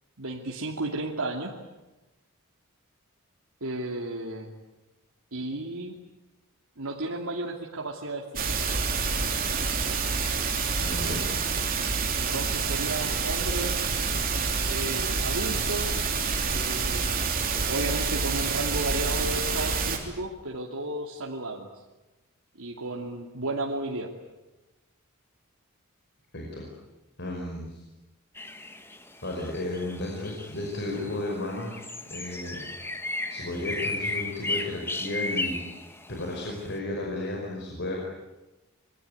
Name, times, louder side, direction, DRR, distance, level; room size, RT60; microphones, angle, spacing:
voice 1, 0.2-1.6 3.6-4.5 5.3-6.0 6.8-8.5 12.1-13.9 14.7-15.9 16.4-17.3 17.7-21.7 22.6-24.1, right 2 dB, 85° right, -1 dB, 2.6 m, -33 dB
sound 1, 8.4-20.0, right 5 dB, 40° right, 3.6 m, -27 dB
voice 2, 10.7-11.3 26.3-26.7 27.2-27.8 29.2-31.8 32.1-32.6 33.3-35.6 36.1-38.0, left 1 dB, 50° left, -1 dB, 5.5 m, -33 dB
sound 2, 28.4-36.7, left 2 dB, 10° left, 1.7 m, -35 dB
26.5 x 23.0 x 9.5 m, 1.1 s
head